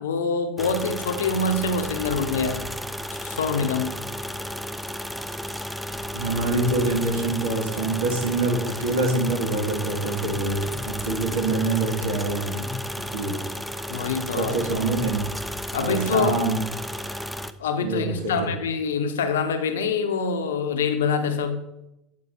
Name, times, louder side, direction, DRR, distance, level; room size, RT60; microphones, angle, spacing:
voice 1, 0.0-2.7 3.1-4.0 13.9-14.6 15.7-16.3 17.6-21.7, left 4 dB, 80° left, 8 dB, 0.7 m, -25 dB
sound 1, 0.6-17.5, equal, ahead, 0.5 m, -33 dB
voice 2, 6.1-12.7 13.1-13.4 14.4-15.3 15.8-16.6 17.8-18.3, right 2 dB, 80° right, 1 dB, 1.8 m, -25 dB
8.5 x 4.6 x 4.2 m, 0.90 s
hypercardioid pair, 75°, 0 cm